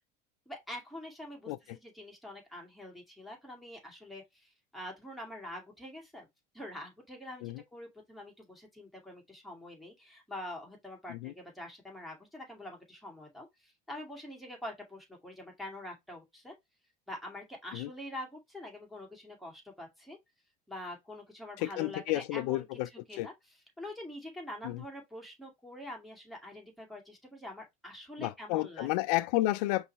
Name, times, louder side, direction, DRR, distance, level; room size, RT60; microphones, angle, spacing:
voice 1, 0.5-6.3 6.5-7.4 7.7-16.5 17.1-20.2 20.7-22.6 23.1-23.3 23.8-28.9, left 1 dB, ahead, 2.1 m, -45 dB
voice 2, 1.5-1.8 7.4-7.6 11.1-11.3 17.7-17.9 21.6-22.9 23.2-23.3 24.6-24.8 28.2-29.9, left 17 dB, 80° left, 0.5 m, -31 dB
5.3 x 3.3 x 2.9 m
supercardioid pair, 120°, 20 cm